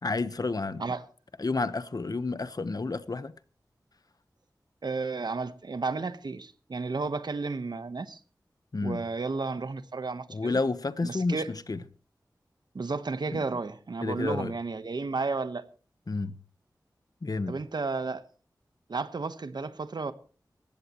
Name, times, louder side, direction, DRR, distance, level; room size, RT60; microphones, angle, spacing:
voice 1, 0.0-0.8 1.4-3.3 8.7-9.0 10.3-11.8 13.3-13.4 14.0-14.5 16.1-16.4 17.2-17.6, left 3 dB, 55° left, 1.1 m, -30 dB
voice 2, 4.8-8.2 8.8-10.6 11.0-11.5 12.7-15.6 17.5-18.2 18.9-20.1, right 4 dB, 75° right, 1.2 m, -32 dB
19.5 x 15.5 x 3.1 m
cardioid pair, 45°, 7 cm